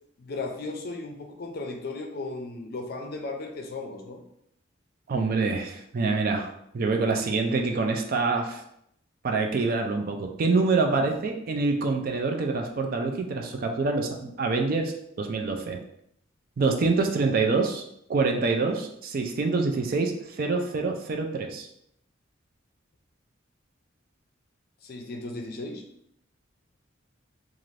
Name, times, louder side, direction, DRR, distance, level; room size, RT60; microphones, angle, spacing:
voice 1, 0.2-4.2 24.8-25.8, left 3 dB, 50° left, 3 dB, 0.5 m, -36 dB
voice 2, 5.1-6.5 6.7-8.6 9.2-15.8 16.6-17.8 18.1-21.7, right 3 dB, 50° right, 3 dB, 0.4 m, -26 dB
2.5 x 2.4 x 3.2 m, 0.75 s
head